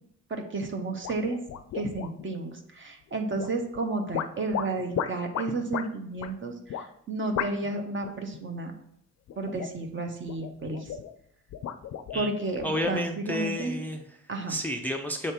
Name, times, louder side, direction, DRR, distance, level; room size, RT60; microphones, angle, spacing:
voice 1, 0.3-1.4 1.7-8.7 9.4-10.8 12.1-13.8 14.3-14.6, right 2 dB, 40° right, 4 dB, 1.1 m, -32 dB
sound 1, 1.0-2.4 3.4-3.8 4.1-5.9 6.2-6.3 6.7-6.9 7.4-7.7 8.0-8.4 9.3-9.9 10.3-11.1 11.5-13.1, left 9 dB, 60° left, 0.5 m, -35 dB
voice 2, 12.6-14.2 14.5-15.3, equal, 5° left, 3 dB, 0.5 m, -31 dB
7.2 x 3.3 x 4.4 m, 0.73 s
cardioid pair, 90°, 30 cm